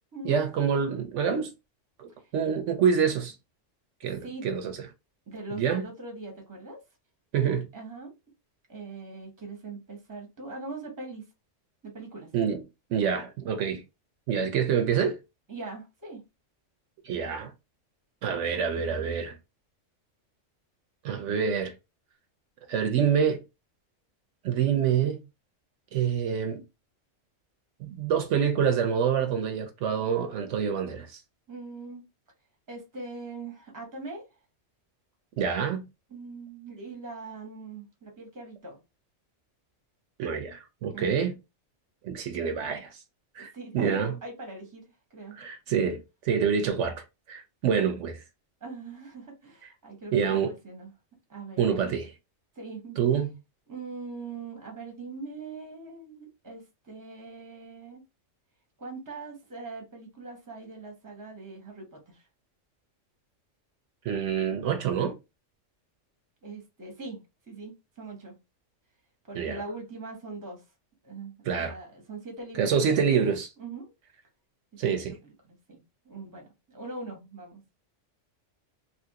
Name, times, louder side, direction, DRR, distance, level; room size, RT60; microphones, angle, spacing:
voice 1, 0.2-1.5 2.0-3.3 4.0-4.8 5.5-5.8 7.3-7.7 12.3-12.6 12.9-13.8 14.3-15.2 17.0-17.5 18.2-19.4 21.0-21.7 22.7-23.4 24.4-25.2 25.9-26.6 27.8-31.2 35.4-35.8 40.2-41.3 42.0-43.0 43.4-44.1 45.4-48.2 50.1-50.5 51.6-52.1 53.0-53.3 64.0-65.2 69.4-69.6 71.5-71.7 72.6-73.5 74.8-75.1, right 7 dB, 75° right, 0.9 m, -26 dB
voice 2, 5.3-6.8 7.7-8.1 8.7-11.3 11.8-12.3 15.5-16.2 31.5-32.0 32.7-34.2 36.1-38.8 40.9-41.1 43.4-45.4 48.6-50.9 51.3-52.0 52.5-53.0 53.7-58.0 58.8-62.3 66.4-67.2 67.5-68.3 69.3-70.6 71.0-73.3 73.6-73.9 74.8-75.0 75.4-77.6, right 3 dB, 15° right, 0.9 m, -41 dB
2.8 x 2.5 x 2.7 m
omnidirectional pair, 1.3 m